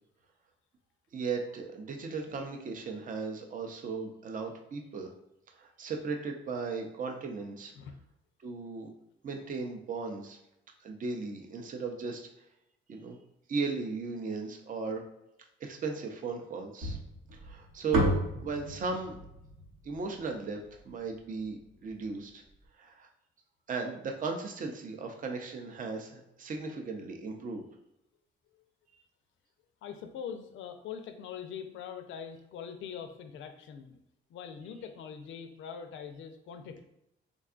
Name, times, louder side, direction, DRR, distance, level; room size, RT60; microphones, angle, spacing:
voice 1, 1.1-5.1 5.6-7.7 8.4-8.9 9.2-10.4 10.8-12.3 12.9-13.2 13.5-15.0 15.6-17.0 17.3-19.2 19.8-20.6 20.8-22.4 22.8-23.1 23.7-27.6, right 4 dB, 45° right, 3 dB, 0.5 m, -36 dB
sound 1, 16.8-21.1, right 1 dB, 85° right, 1.0 m, -33 dB
voice 2, 29.8-34.0 34.3-36.8, left 7 dB, 75° left, 7 dB, 0.4 m, -43 dB
3.6 x 2.3 x 2.4 m, 0.81 s
cardioid pair, 90°, 20 cm